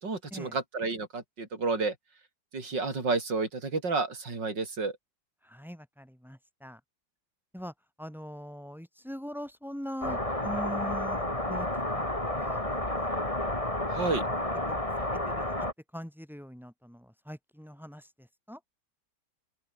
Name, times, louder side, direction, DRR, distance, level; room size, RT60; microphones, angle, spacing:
voice 1, 0.0-1.9 2.5-5.0 13.9-14.2, right 4 dB, 65° right, 5.3 m, -31 dB
voice 2, 5.4-6.8 7.5-11.7 11.9-13.1 14.7-15.7 15.9-18.6, equal, ahead, 7.7 m, -42 dB
sound 1, 10.0-15.7, left 1 dB, 15° left, 4.6 m, -31 dB
open air
omnidirectional pair, 2.1 m